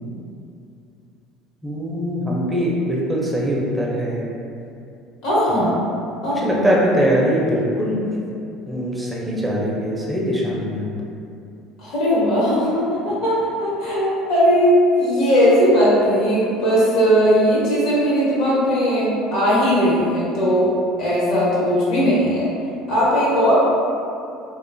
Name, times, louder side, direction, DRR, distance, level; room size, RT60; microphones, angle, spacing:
voice 1, 1.6-4.3 5.5-5.6 6.3-8.0 8.7-10.9, equal, 10° right, -4 dB, 0.5 m, -22 dB
voice 2, 5.2-5.8 6.2-6.8 11.8-20.7 21.0-22.5 22.9-23.5, equal, 70° left, -8 dB, 1.0 m, -18 dB
2.5 x 2.2 x 2.5 m, 2.6 s
hypercardioid pair, 80°, 0 cm